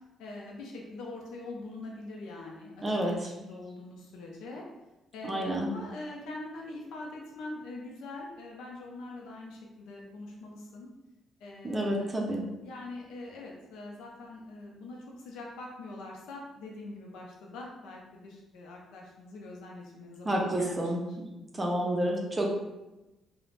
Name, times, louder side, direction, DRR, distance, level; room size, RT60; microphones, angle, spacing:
voice 1, 0.2-4.6 5.1-10.9 11.4-21.7, left 2 dB, 90° left, -2 dB, 0.4 m, -44 dB
voice 2, 2.8-3.3 5.2-5.7 11.6-12.4 20.3-21.0 21.5-22.5, right 1 dB, 25° right, 0 dB, 0.5 m, -29 dB
2.4 x 2.0 x 3.2 m, 1.0 s
cardioid pair, 90°, 0 cm